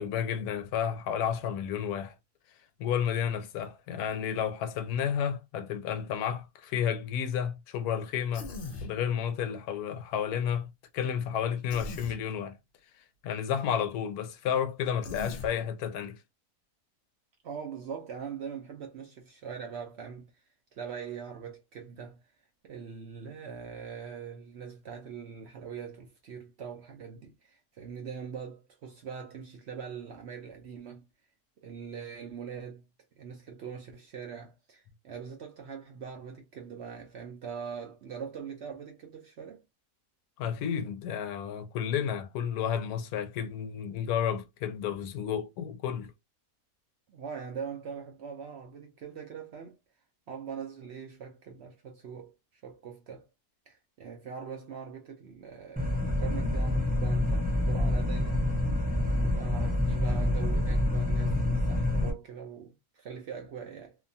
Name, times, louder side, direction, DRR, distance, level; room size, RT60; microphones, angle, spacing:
voice 1, 0.0-2.1 2.8-8.5 8.8-12.6 13.2-16.2 40.4-46.1, left 8 dB, 85° left, 1.1 m, -31 dB
Human voice, 8.3-8.9 11.7-12.2 15.0-15.5, left 2 dB, 65° left, 0.5 m, -39 dB
voice 2, 17.4-20.4 20.7-22.2 22.6-31.1 31.6-32.8 33.2-39.6 47.1-49.8 50.3-52.3 52.6-53.3 53.7-58.5 59.2-64.0, right 7 dB, 65° right, 0.7 m, -42 dB
sound 1, 55.8-62.1, left 1 dB, 15° right, 0.3 m, -27 dB
2.9 x 2.2 x 2.6 m
omnidirectional pair, 1.6 m